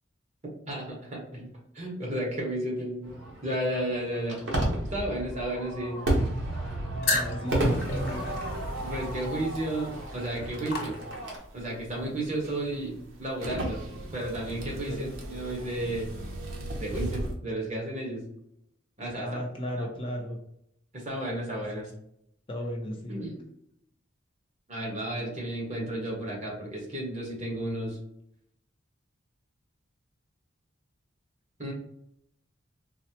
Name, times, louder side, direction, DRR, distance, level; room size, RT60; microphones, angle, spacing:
voice 1, 0.7-1.5 1.7-3.2 3.4-4.4 4.9-6.0 8.8-11.0 11.5-13.8 14.1-16.1 16.8-18.2 19.0-19.4 19.8-19.9 20.9-21.9 23.1-23.3 24.7-28.0 31.6-31.7, right 1 dB, 35° right, -3 dB, 1.2 m, -33 dB
Fireworks, 3.0-11.4, right 1 dB, 70° right, 1.1 m, -32 dB
sound 1, 7.0-11.5, left 2 dB, 55° left, 0.9 m, -34 dB
voice 2, 7.1-8.3 14.9-15.0 19.2-20.4 22.5-23.2, equal, 25° left, -1 dB, 0.5 m, -34 dB
sound 2, 7.5-17.4, right 1 dB, 90° right, 0.8 m, -39 dB
4.0 x 2.0 x 2.8 m, 0.76 s
head